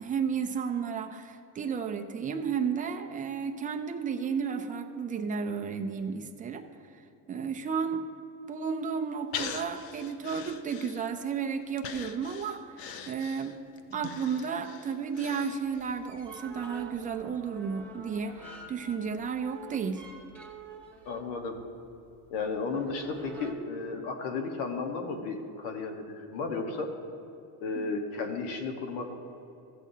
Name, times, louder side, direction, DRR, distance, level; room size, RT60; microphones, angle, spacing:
voice 1, 0.0-6.6 7.3-8.0 8.5-12.6 13.1-13.6 13.9-20.0 27.7-27.9, right 6 dB, 20° right, 4 dB, 0.4 m, -33 dB
Breathing, 9.3-11.3 11.8-16.0 16.3-16.4, left 7 dB, 65° left, 0.8 m, -41 dB
sound 1, 15.6-23.5, right 2 dB, 5° left, 0.9 m, -47 dB
voice 2, 21.0-21.6 22.3-26.9 27.6-29.2, left 4 dB, 85° left, 4 dB, 1.4 m, -34 dB
14.5 x 8.4 x 2.7 m, 2.8 s
cardioid pair, 130°, 45 cm